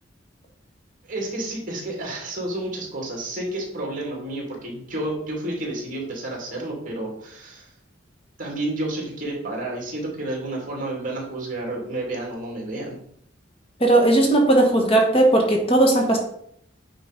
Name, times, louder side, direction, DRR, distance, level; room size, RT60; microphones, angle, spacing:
voice 1, 1.0-7.7 8.4-13.0, right 1 dB, 40° right, -1 dB, 2.6 m, -30 dB
voice 2, 13.8-16.2, right 2 dB, 30° left, 1 dB, 1.3 m, -17 dB
8.8 x 3.9 x 5.1 m, 0.67 s
head